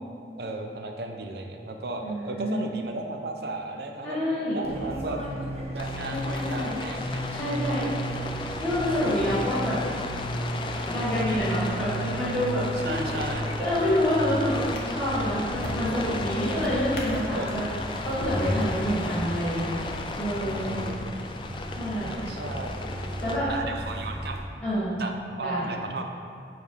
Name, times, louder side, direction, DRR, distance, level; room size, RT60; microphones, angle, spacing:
voice 1, 0.4-4.2 4.5-5.2 5.7-7.4 8.0-8.1 12.8-13.5 17.3-17.6 20.4-21.0 22.0-22.8 23.5-24.4 25.0-26.0, right 2 dB, 65° right, 3 dB, 0.6 m, -35 dB
voice 2, 2.0-2.7 4.0-4.6 6.1-6.7 7.3-7.8 8.6-9.8 10.7-13.2 13.6-17.6 18.0-19.7 20.2-20.7 21.7-22.1 23.2-23.5 24.6-25.0 25.4-25.7, equal, 10° left, -13 dB, 1.5 m, -28 dB
Fixed-wing aircraft airplane, 4.6-24.4, equal, 35° right, 0.9 m, -35 dB
Rain, 5.8-23.4, left 3 dB, 30° left, 0.3 m, -36 dB
Drawer open or close, 14.7-19.7 20.4-20.6, left 1 dB, 55° left, 0.9 m, -36 dB
7.4 x 4.7 x 3.5 m, 2.3 s
head